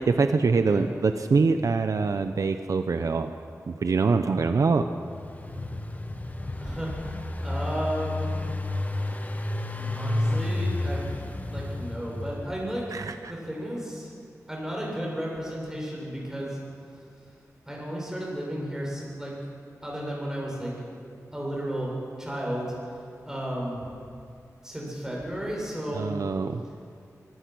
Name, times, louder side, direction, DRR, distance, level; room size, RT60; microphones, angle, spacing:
voice 1, 0.0-3.3 3.7-4.9 12.9-13.3 25.9-26.6, right 4 dB, 65° right, 8 dB, 0.8 m, -24 dB
Engine, 4.8-12.8, left 2 dB, 25° left, 1.4 m, -31 dB
voice 2, 6.6-8.5 9.7-11.0 11.5-12.9 13.3-14.1 14.5-16.6 17.6-19.3 19.8-20.7 21.3-21.9 22.2-24.0 24.6-26.1, equal, 10° right, -3 dB, 7.3 m, -33 dB
24.0 x 18.5 x 6.2 m, 2.3 s
wide cardioid pair, 105°, 6 cm